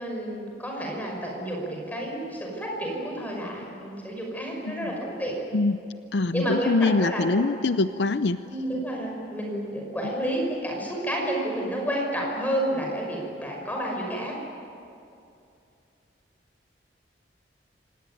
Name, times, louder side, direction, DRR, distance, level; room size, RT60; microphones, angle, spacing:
voice 1, 0.0-5.4 6.3-7.5 8.5-14.3, equal, 10° left, -1 dB, 6.0 m, -30 dB
voice 2, 6.1-8.4, left 3 dB, 70° left, 12 dB, 0.6 m, -24 dB
26.0 x 18.0 x 9.2 m, 2.6 s
head